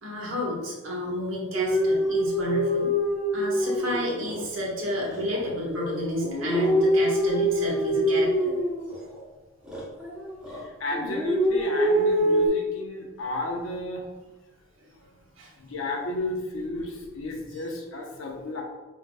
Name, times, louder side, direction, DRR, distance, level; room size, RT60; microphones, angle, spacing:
voice 1, 0.0-2.9 3.3-8.6 15.4-15.5 17.5-17.6, left 1 dB, 70° right, -3 dB, 1.2 m, -31 dB
sound 1, 1.5-4.5 5.0-9.2 9.7-10.6 10.9-12.5, equal, 5° right, 0.8 m, -25 dB
voice 2, 10.8-14.0 15.6-18.6, left 2 dB, 80° left, 0 dB, 0.9 m, -32 dB
4.8 x 3.7 x 2.2 m, 1.2 s
head